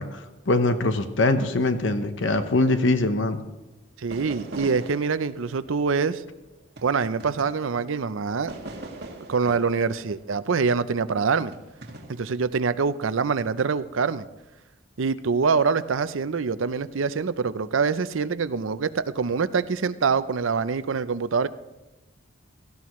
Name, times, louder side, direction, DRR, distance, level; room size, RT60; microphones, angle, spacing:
voice 1, 0.0-3.4, left 2 dB, 70° left, 9 dB, 0.9 m, -23 dB
voice 2, 4.0-6.2 6.8-8.5 9.3-11.5 12.1-14.3 15.0-21.5, right 5 dB, 80° right, 14 dB, 0.6 m, -25 dB
sound 1, 4.1-8.0 8.5-10.9 11.4-12.3, right 2 dB, 55° right, 2.0 m, -41 dB
17.5 x 14.0 x 3.1 m, 1.1 s
head